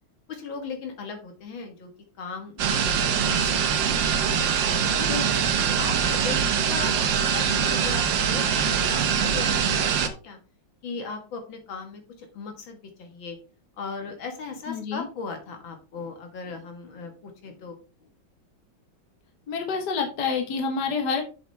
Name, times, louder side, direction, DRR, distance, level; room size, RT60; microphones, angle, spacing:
voice 1, 0.3-1.9 2.2-5.1 5.7-10.4 10.8-13.4 13.8-18.1, left 4 dB, 75° left, 4 dB, 2.2 m, -38 dB
sound 1, 2.6-10.1, right 7 dB, 70° right, 1.5 m, -23 dB
voice 2, 5.1-5.5 14.7-15.1 19.5-21.2, left 5 dB, 60° left, 3 dB, 1.8 m, -28 dB
7.4 x 6.7 x 3.3 m, 0.34 s
omnidirectional pair, 2.1 m